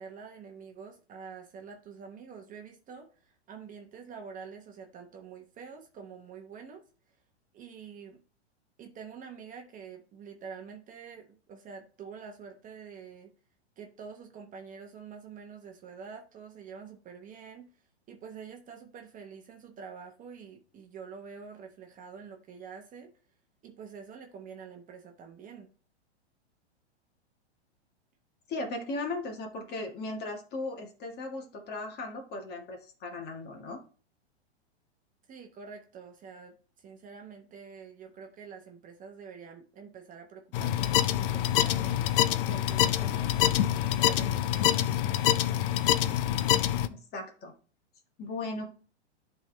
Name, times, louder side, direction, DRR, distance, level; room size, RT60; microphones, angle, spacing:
voice 1, 0.0-6.8 7.5-8.2 8.8-13.3 13.8-23.1 23.6-25.7 35.3-42.0 42.5-45.3, right 6 dB, 25° right, 3 dB, 1.1 m, -47 dB
voice 2, 28.5-33.8 46.9-47.5 48.2-48.7, left 2 dB, 30° left, 3 dB, 1.8 m, -37 dB
sound 1, 40.5-46.9, left 12 dB, 50° left, 0.6 m, -26 dB
11.0 x 3.8 x 3.3 m, 0.41 s
hypercardioid pair, 115°, 34 cm